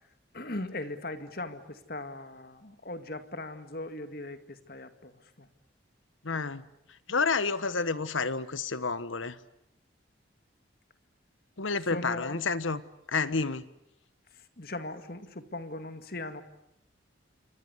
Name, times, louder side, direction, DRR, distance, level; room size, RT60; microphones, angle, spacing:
voice 1, 0.3-5.5 11.9-12.4 14.3-16.4, left 2 dB, 50° left, 9 dB, 2.1 m, -39 dB
voice 2, 6.2-6.6 7.1-9.4 11.6-12.8 13.1-13.7, left 4 dB, 85° left, 15 dB, 1.3 m, -30 dB
28.0 x 25.5 x 8.3 m, 0.81 s
head